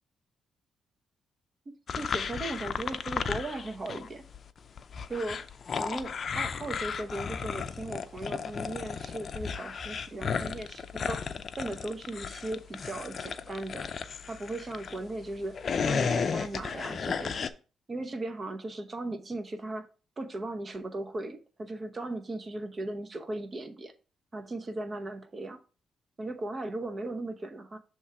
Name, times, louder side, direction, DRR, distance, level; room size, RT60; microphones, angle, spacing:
sound 1, 1.9-4.1 4.3-15.0 15.4-17.5, left 6 dB, 50° left, 0.5 m, -34 dB
voice 1, 2.0-4.2 5.1-5.4 5.8-11.2 11.6-13.9 14.3-15.6 15.8-17.5 17.9-19.9 20.2-23.9 24.3-25.6 26.2-27.8, right 2 dB, 35° right, 1.0 m, -37 dB
7.1 x 3.1 x 4.7 m
cardioid pair, 75°, 0 cm